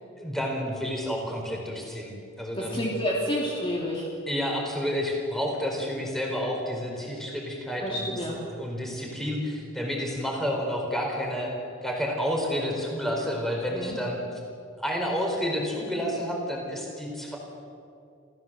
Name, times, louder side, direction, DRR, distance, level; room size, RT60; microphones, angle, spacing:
voice 1, 0.2-2.9 4.3-8.2 8.5-11.5 11.8-14.2 14.8-17.4, equal, ahead, -1 dB, 4.6 m, -30 dB
voice 2, 2.6-4.1 7.8-8.4 13.7-14.0, equal, 25° left, -3 dB, 3.0 m, -29 dB
27.0 x 16.0 x 7.6 m, 2.5 s
head